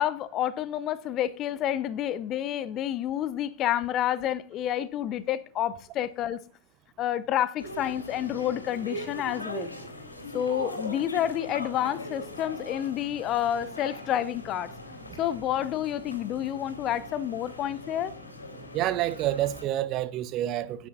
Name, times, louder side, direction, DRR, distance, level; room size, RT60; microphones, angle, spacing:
voice 1, 0.0-6.4 7.0-9.7 10.3-14.7 15.2-18.1, left 11 dB, 35° left, 0.6 m, -29 dB
sound 1, 7.6-19.6, equal, 80° left, 3.9 m, -40 dB
voice 2, 18.7-20.9, right 13 dB, 35° right, 0.9 m, -28 dB
17.0 x 10.5 x 2.7 m
figure-of-eight pair, 90°, 0 cm